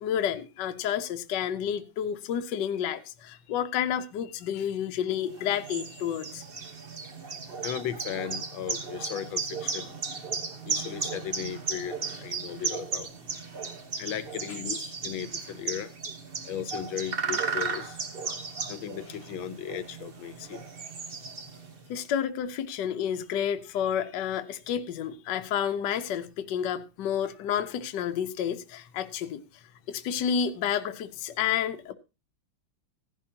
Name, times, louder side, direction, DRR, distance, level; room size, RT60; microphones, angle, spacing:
voice 1, 0.0-6.4 21.9-29.4 29.9-31.9, left 9 dB, 65° left, 1.3 m, -30 dB
sound 1, 5.3-21.8, right 4 dB, 35° right, 1.1 m, -35 dB
voice 2, 7.6-10.0 10.6-13.1 14.0-15.9 16.4-18.0 18.7-20.6, left 9 dB, 80° left, 1.6 m, -36 dB
16.0 x 11.0 x 2.8 m
omnidirectional pair, 2.1 m